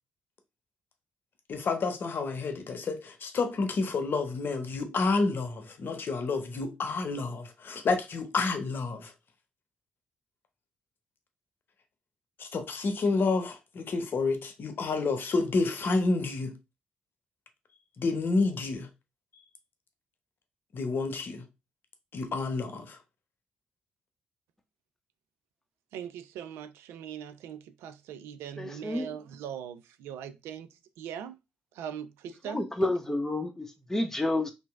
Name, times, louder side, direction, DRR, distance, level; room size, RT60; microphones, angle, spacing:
voice 1, 1.5-9.1 12.4-16.6 18.0-18.9 20.7-21.5 22.1-23.0, left 3 dB, 55° left, 0.8 m, -29 dB
voice 2, 25.9-30.7 31.0-31.4 31.7-32.6, right 9 dB, 75° right, 0.3 m, -40 dB
voice 3, 28.6-29.2 32.4-34.5, left 1 dB, 10° left, 0.8 m, -30 dB
2.9 x 2.6 x 3.4 m
hypercardioid pair, 45°, 4 cm